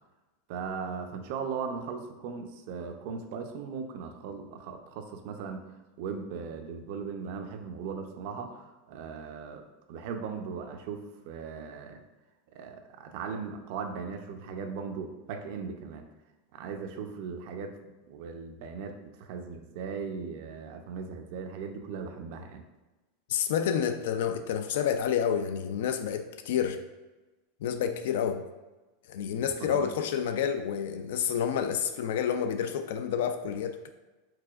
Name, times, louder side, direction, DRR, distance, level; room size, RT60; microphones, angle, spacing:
voice 1, 0.5-5.7 6.0-12.0 12.5-16.0 16.5-17.7 18.0-22.6 29.4-29.9, right 5 dB, 50° right, 6 dB, 0.5 m, -38 dB
voice 2, 23.3-26.8 27.6-28.4 29.1-33.9, left 8 dB, 70° left, 7 dB, 0.3 m, -29 dB
4.7 x 4.2 x 2.4 m, 1.2 s
supercardioid pair, 160°, 0 cm